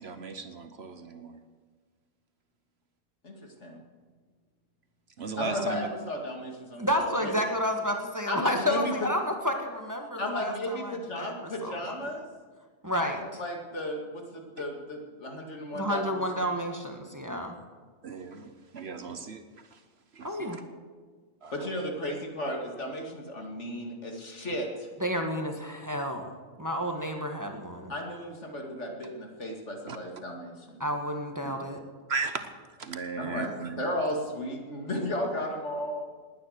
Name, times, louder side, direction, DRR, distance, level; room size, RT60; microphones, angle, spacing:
voice 1, 0.0-1.4 5.2-5.9 18.0-19.4 19.7-19.8 20.1-20.6 21.4-21.7 29.9-30.0 31.4-31.5 32.1-32.5 32.8-33.8, right 4 dB, 55° right, 9 dB, 1.1 m, -36 dB
voice 2, 5.4-7.3 8.3-9.1 10.2-12.3 12.9-16.2 17.2-17.4 21.5-24.9 27.9-30.8 33.2-36.0, left 1 dB, 60° left, 2 dB, 2.5 m, -34 dB
voice 3, 6.8-12.0 12.8-13.4 15.7-17.6 20.2-20.6 25.0-27.9 30.8-31.8, equal, 15° right, 3 dB, 1.5 m, -31 dB
19.5 x 9.8 x 6.5 m, 1.5 s
omnidirectional pair, 1.4 m